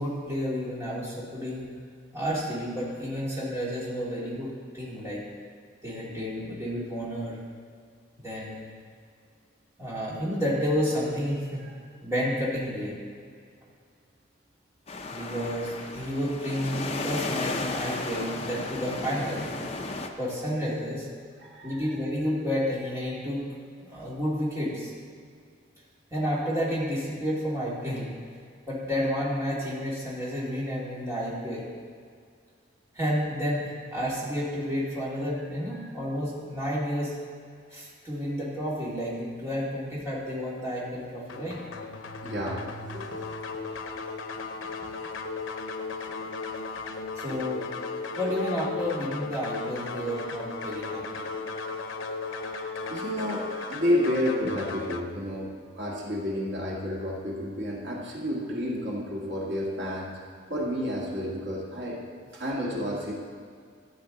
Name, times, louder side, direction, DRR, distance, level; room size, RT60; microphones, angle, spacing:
voice 1, 0.0-1.7 2.1-5.2 5.8-7.4 8.2-8.7 9.8-11.6 12.0-12.9 15.1-19.5 20.2-21.1 21.6-23.4 23.8-24.9 26.1-28.1 28.7-31.6 32.9-37.1 37.7-41.6 47.2-47.7 48.2-51.3, equal, 15° right, -8 dB, 2.4 m, -30 dB
sound 1, 14.9-20.1, left 2 dB, 30° left, 0.6 m, -34 dB
voice 2, 21.4-21.9 35.8-35.9 42.2-43.2 44.6-44.7 52.1-60.1 60.5-62.0 62.3-63.1, equal, 70° right, -4 dB, 1.8 m, -31 dB
sound 2, 41.3-55.0, left 4 dB, 90° left, 0.7 m, -36 dB
13.5 x 8.6 x 3.9 m, 2.1 s
head